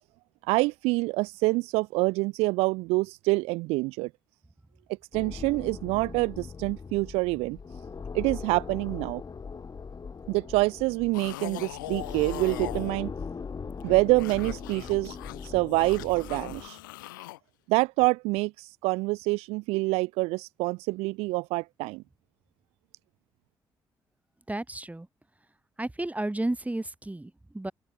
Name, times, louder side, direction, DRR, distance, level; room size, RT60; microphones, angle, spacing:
voice 1, 0.4-4.1 5.1-7.6 8.1-9.2 10.3-13.1 13.8-15.2 15.4-16.8 17.7-22.0, right 23 dB, 80° right, 0.7 m, -26 dB
sound 1, 5.1-16.7, left 5 dB, 40° left, 1.3 m, -40 dB
sound 2, 11.1-12.9 13.7-17.4, left 17 dB, 90° left, 2.4 m, -40 dB
voice 2, 24.5-25.1 25.8-27.7, right 1 dB, 15° right, 2.6 m, -32 dB
open air
hypercardioid pair, 45°, 10 cm